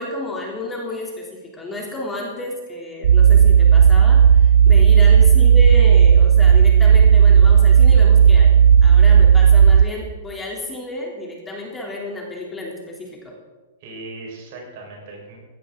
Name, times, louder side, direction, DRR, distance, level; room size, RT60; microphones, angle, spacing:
voice 1, 0.0-8.5 8.8-13.3, left 1 dB, 15° left, -1 dB, 3.2 m, -31 dB
sound 1, 3.0-9.9, right 7 dB, 70° right, 0.4 m, -11 dB
voice 2, 13.8-15.4, right 2 dB, 55° right, 0 dB, 4.9 m, -38 dB
16.5 x 11.5 x 3.9 m, 1.3 s
hypercardioid pair, 120°, 0 cm